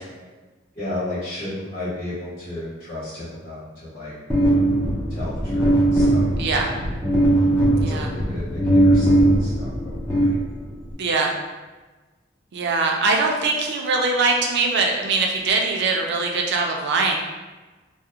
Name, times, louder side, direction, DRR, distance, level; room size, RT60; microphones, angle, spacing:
voice 1, 0.8-4.1 5.1-6.3 6.7-6.8 7.9-9.1 9.4-10.4, left 1 dB, 30° left, -14 dB, 1.0 m, -33 dB
sound 1, 4.3-10.9, right 1 dB, 10° left, 0.5 m, -19 dB
voice 2, 6.4-6.7 7.8-8.1 11.0-11.3 12.5-17.2, right 3 dB, 60° right, 1 dB, 0.4 m, -22 dB
2.4 x 2.0 x 2.7 m, 1.2 s
head